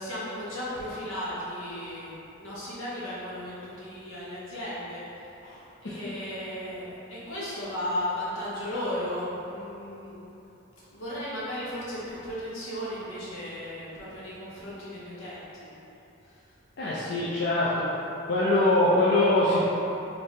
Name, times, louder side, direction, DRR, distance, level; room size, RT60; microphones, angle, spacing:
voice 1, 0.0-5.3 5.8-10.1 10.9-15.7 16.2-16.4, left 1 dB, 80° left, -8 dB, 1.3 m, -35 dB
voice 2, 16.8-17.9 18.2-19.7, left 1 dB, 55° left, -8 dB, 0.5 m, -23 dB
3.3 x 3.2 x 4.0 m, 3.0 s
head